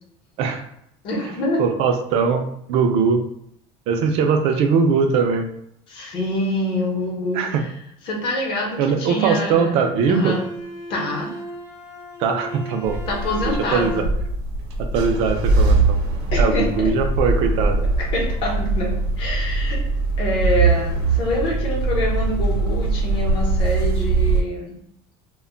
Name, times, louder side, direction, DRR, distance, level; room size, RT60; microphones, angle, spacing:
voice 1, 1.0-1.6 5.9-7.6 8.1-9.8 10.1-10.4 10.9-11.4 13.1-14.1 16.3-16.9 18.1-19.8 20.2-24.8, left 1 dB, 40° left, -2 dB, 0.8 m, -25 dB
voice 2, 1.6-3.2 3.9-5.5 7.3-7.6 8.8-10.4 12.2-13.0 13.3-14.0 14.8-16.0 16.4-17.8, right 5 dB, 45° right, 5 dB, 0.4 m, -21 dB
Bowed string instrument, 10.0-14.3, equal, 80° left, 0.6 m, -36 dB
sound 1, 12.8-24.4, right 3 dB, 85° right, 0.7 m, -21 dB
2.2 x 2.1 x 3.7 m, 0.73 s
cardioid pair, 170°, 14 cm